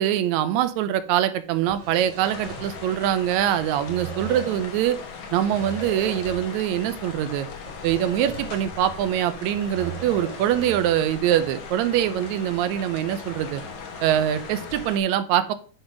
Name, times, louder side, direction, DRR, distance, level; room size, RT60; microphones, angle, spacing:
voice 1, 0.0-5.0 5.3-7.5 7.8-13.6 14.0-15.5, right 11 dB, 80° right, 12 dB, 1.7 m, -23 dB
sound 1, 1.5-3.3 3.6-4.8 5.3-6.7 7.0-7.1 7.7-8.9 9.2-11.1, right 3 dB, 25° right, 2.0 m, -39 dB
sound 2, 2.2-15.0, left 5 dB, 65° left, 2.5 m, -39 dB
10.5 x 4.0 x 4.9 m, 0.43 s
omnidirectional pair, 3.9 m